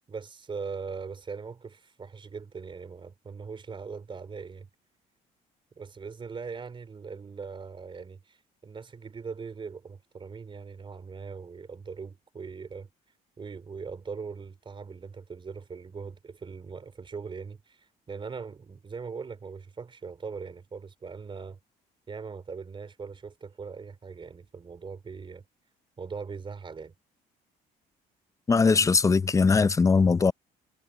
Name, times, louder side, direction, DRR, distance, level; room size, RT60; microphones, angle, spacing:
voice 1, 0.1-4.7 5.7-12.9 13.4-21.6 22.1-25.4 26.0-26.9, right 5 dB, 30° right, 3.0 m, -40 dB
voice 2, 28.5-30.3, left 4 dB, 20° left, 0.5 m, -20 dB
cardioid pair, 110°, 17 cm